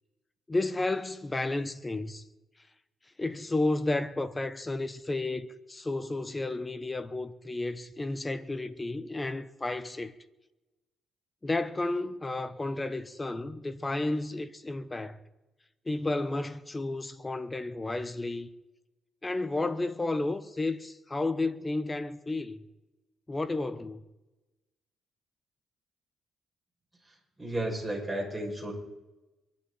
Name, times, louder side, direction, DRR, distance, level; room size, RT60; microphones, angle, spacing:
voice 1, 0.5-2.2 3.2-10.2 11.4-15.2 15.8-18.5 19.2-22.6 23.3-24.0, left 2 dB, 20° left, 1.0 m, -32 dB
voice 2, 27.4-28.7, right 1 dB, 5° right, 6.6 m, -33 dB
23.5 x 11.5 x 4.3 m
cardioid pair, 90°, 0 cm